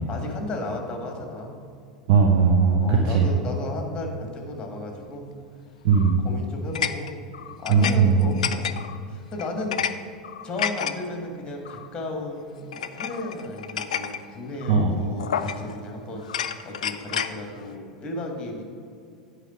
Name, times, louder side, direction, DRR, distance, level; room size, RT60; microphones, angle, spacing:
voice 1, 0.1-1.6 2.8-5.3 6.2-7.1 7.6-8.7 9.1-10.0 10.4-18.6, left 2 dB, 20° left, 2 dB, 1.6 m, -34 dB
voice 2, 2.1-3.3 5.8-6.2 7.7-8.2 14.7-15.0, right 5 dB, 50° right, 0 dB, 0.9 m, -18 dB
sound 1, 5.9-6.2 6.7-9.0 9.4-9.9 10.2-10.9 11.6-11.9 12.7-14.2 14.6-14.8 15.2-15.8 16.2-17.3, left 8 dB, 70° left, 0.4 m, -30 dB
9.0 x 4.8 x 5.8 m, 2.4 s
figure-of-eight pair, 85°, 4 cm